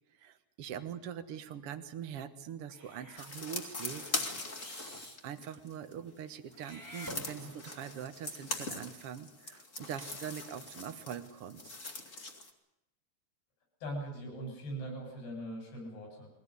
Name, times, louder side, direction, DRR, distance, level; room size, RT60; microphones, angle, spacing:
voice 1, 0.1-4.2 5.0-11.9, right 9 dB, 70° right, 9 dB, 1.4 m, -43 dB
Meow / Hiss, 2.7-3.3 4.6-5.2 6.5-7.8, equal, 5° left, 1.9 m, -48 dB
sound 1, 3.2-5.9 6.5-12.5, left 3 dB, 30° left, 1.7 m, -41 dB
voice 2, 13.8-16.3, right 1 dB, 80° left, 3 dB, 9.5 m, -41 dB
23.0 x 17.0 x 9.8 m, 0.89 s
omnidirectional pair, 4.6 m